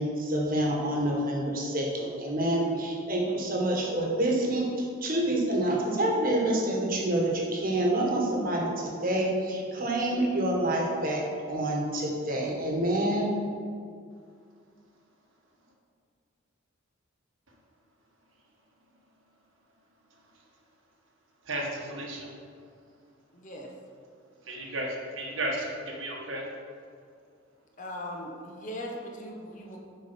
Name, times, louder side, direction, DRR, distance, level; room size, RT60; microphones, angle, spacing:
voice 1, 0.0-11.2 11.5-13.3, right 1 dB, 45° right, -2 dB, 1.5 m, -27 dB
voice 2, 21.5-22.3 24.4-26.5, right 1 dB, 70° right, -1 dB, 1.5 m, -33 dB
voice 3, 23.3-23.7 27.8-29.8, equal, 40° left, 0 dB, 1.0 m, -39 dB
6.9 x 5.3 x 5.7 m, 2.3 s
head